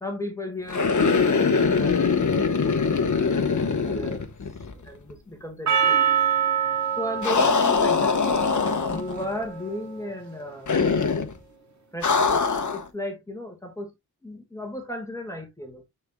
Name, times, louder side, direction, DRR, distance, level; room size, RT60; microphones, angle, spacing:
voice 1, 0.0-2.3 2.6-3.0 3.8-4.2 4.8-6.0 7.0-10.7 11.9-12.4 12.7-13.9 14.2-15.8, left 1 dB, 10° left, 1.7 m, -35 dB
sound 1, 0.7-4.8 5.1-5.2 7.2-9.2 10.7-11.3 12.0-12.9, left 5 dB, 50° left, 1.1 m, -22 dB
Percussion, 5.7-10.1, right 8 dB, 45° right, 2.1 m, -26 dB
10.5 x 4.5 x 2.2 m
wide cardioid pair, 145°, 39 cm